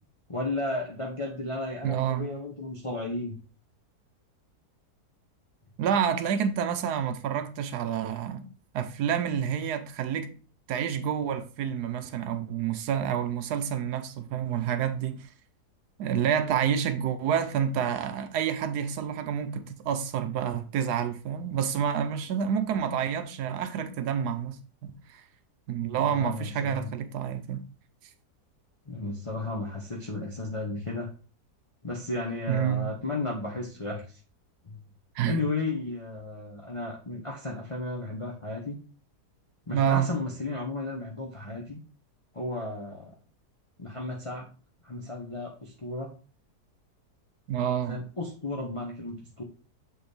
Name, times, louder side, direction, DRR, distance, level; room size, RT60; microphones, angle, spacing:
voice 1, 0.3-3.4 26.1-26.9 28.9-31.1 31.8-34.2 34.6-34.8 35.3-38.8 39.7-41.8 42.3-43.2 43.8-44.5 44.8-46.1 47.9-49.4, left 2 dB, 25° left, 0.8 m, -34 dB
voice 2, 1.8-2.3 5.8-8.5 8.7-10.3 10.7-15.3 16.0-25.2 25.7-27.6 32.5-32.9 35.1-35.4 39.7-40.1 47.5-48.0, right 8 dB, 80° right, 1.2 m, -28 dB
6.7 x 4.3 x 3.3 m
omnidirectional pair, 1.7 m